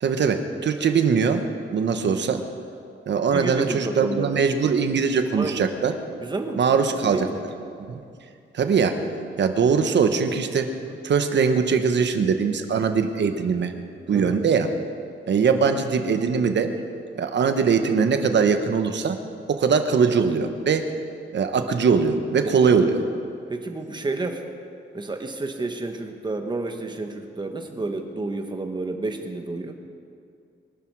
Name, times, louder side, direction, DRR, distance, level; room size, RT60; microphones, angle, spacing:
voice 1, 0.0-1.4 1.7-2.4 3.1-5.9 6.6-7.3 7.9-8.0 8.5-9.1 9.4-10.7 11.0-13.7 14.1-14.7 15.3-16.7 17.1-19.2 19.5-20.9 21.3-23.0, right 5 dB, 60° right, 7 dB, 1.2 m, -21 dB
voice 2, 3.3-4.3 5.3-5.7 6.2-6.6 7.0-7.4 10.8-10.9 14.1-14.4 22.6-22.9 23.5-24.4 24.9-29.8, right 2 dB, 20° right, 5 dB, 1.3 m, -30 dB
23.5 x 12.5 x 4.8 m, 2.4 s
wide cardioid pair, 165°, 21 cm